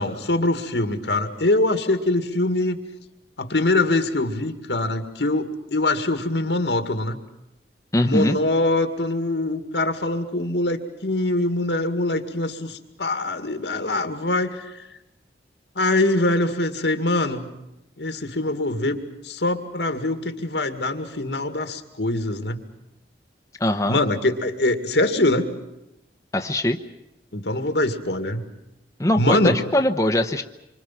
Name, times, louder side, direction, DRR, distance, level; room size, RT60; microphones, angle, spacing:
voice 1, 0.0-2.8 3.4-7.2 8.0-14.9 15.8-17.4 18.0-22.6 23.9-25.5 27.3-28.4 29.2-29.6, left 2 dB, 85° left, 7 dB, 2.1 m, -23 dB
voice 2, 7.9-8.4 23.6-24.0 26.3-26.8 29.0-30.4, left 1 dB, 20° left, 4 dB, 0.9 m, -21 dB
26.5 x 25.0 x 5.9 m, 0.91 s
head